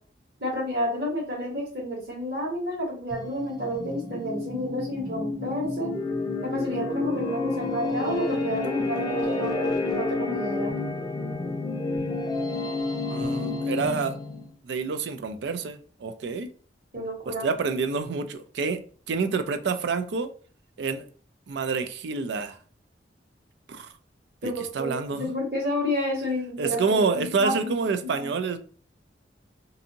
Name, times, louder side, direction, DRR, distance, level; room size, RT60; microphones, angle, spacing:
voice 1, 0.4-5.9 6.4-10.8 16.9-17.5 24.4-27.7 28.0-28.3, equal, 60° right, -2 dB, 1.3 m, -30 dB
sound 1, 3.1-14.5, left 2 dB, 20° left, 0.5 m, -30 dB
voice 2, 13.1-14.2 14.6-16.5 17.3-18.8 19.1-20.3 20.8-21.0 21.5-22.6 23.7-23.9 24.4-25.3 26.6-28.6, right 4 dB, 75° right, 9 dB, 0.4 m, -28 dB
2.7 x 2.6 x 2.7 m, 0.44 s
head